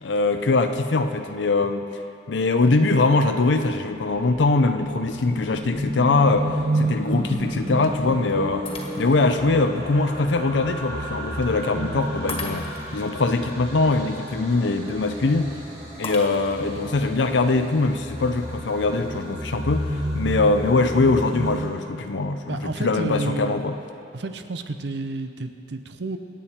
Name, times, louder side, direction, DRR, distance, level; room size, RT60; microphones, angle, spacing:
voice 1, 0.0-1.9 2.3-8.7 9.0-12.6 12.9-15.5 16.0-23.8, left 3 dB, 90° left, 7 dB, 0.6 m, -22 dB
sound 1, 3.9-21.7, right 1 dB, 25° right, 4.2 m, -31 dB
Shatter, 8.7-9.4 9.9-10.0 12.3-13.0 16.0-16.8, left 3 dB, 30° left, 1.6 m, -36 dB
voice 2, 11.7-12.1 22.5-23.6 24.1-26.2, right 2 dB, 70° right, 9 dB, 0.8 m, -31 dB
24.5 x 8.9 x 4.4 m, 2.7 s
head